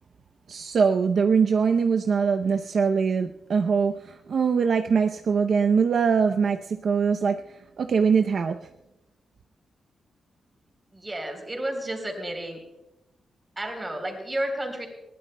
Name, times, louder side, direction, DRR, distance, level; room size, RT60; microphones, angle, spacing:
voice 1, 0.5-8.6, right 6 dB, 50° right, 5 dB, 0.6 m, -23 dB
voice 2, 10.9-12.6 13.6-14.9, right 1 dB, 15° right, 3 dB, 3.6 m, -31 dB
21.5 x 19.0 x 2.2 m, 0.91 s
wide cardioid pair, 170°, 0 cm